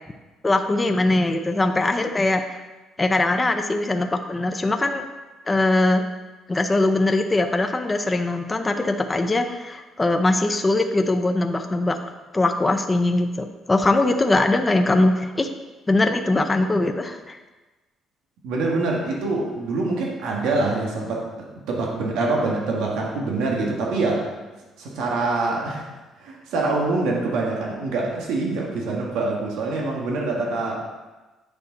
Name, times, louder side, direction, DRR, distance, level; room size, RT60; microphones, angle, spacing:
voice 1, 0.4-2.4 3.0-5.0 5.5-6.0 6.5-12.0 12.3-15.5 15.9-17.4, left 2 dB, 15° left, 5 dB, 0.6 m, -21 dB
voice 2, 18.4-21.3 21.7-24.3 24.8-25.8 26.2-30.8, right 3 dB, 90° right, -2 dB, 1.9 m, -25 dB
9.1 x 6.7 x 4.1 m, 1.2 s
cardioid pair, 140°, 0 cm